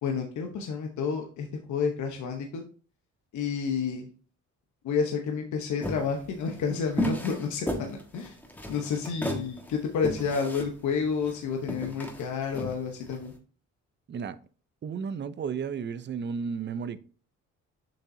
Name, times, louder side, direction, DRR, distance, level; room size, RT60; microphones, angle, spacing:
voice 1, 0.0-2.6 3.3-4.1 4.8-8.3 8.7-13.3, left 6 dB, 75° left, 1.0 m, -30 dB
sound 1, 5.8-13.3, equal, 5° left, 1.4 m, -34 dB
voice 2, 14.1-14.4 14.8-17.0, right 6 dB, 35° right, 0.5 m, -33 dB
7.2 x 5.4 x 2.7 m
cardioid pair, 90°, 30 cm